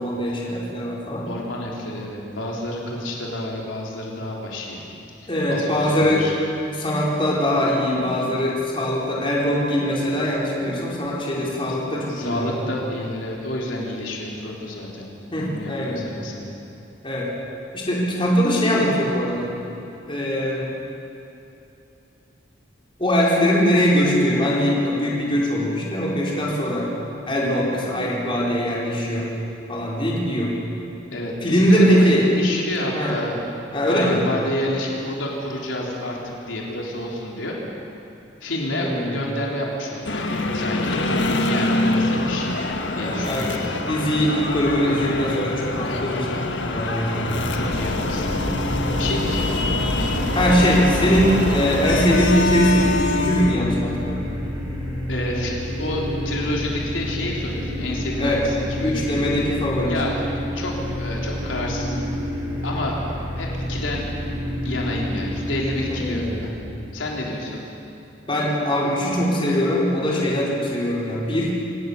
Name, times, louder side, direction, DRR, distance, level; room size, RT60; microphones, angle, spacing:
voice 1, 0.0-1.3 5.3-6.3 6.7-12.5 15.3-16.0 17.0-17.3 17.7-19.5 20.1-20.7 23.0-26.9 27.3-29.3 29.7-30.5 31.4-32.2 32.9-33.1 33.7-34.2 38.7-39.2 43.0-47.4 50.3-54.2 58.2-58.4 58.8-59.9 65.9-66.5 68.3-71.5, equal, 25° left, -5 dB, 4.5 m, -21 dB
voice 2, 1.3-4.8 5.2-6.3 12.1-15.1 15.4-16.5 31.1-33.4 33.9-36.2 36.5-37.6 38.4-42.5 43.0-43.8 47.5-48.6 49.0-50.3 55.1-55.5 55.8-59.3 59.9-60.1 60.5-62.1 62.6-63.0 63.4-64.0 64.6-66.5 66.9-67.6, left 1 dB, 85° left, -2 dB, 3.8 m, -29 dB
sound 1, 40.0-53.6, left 2 dB, 65° left, 1.7 m, -25 dB
sound 2, 47.3-66.5, left 1 dB, 25° right, 5.8 m, -29 dB
27.0 x 17.5 x 6.9 m, 2.8 s
head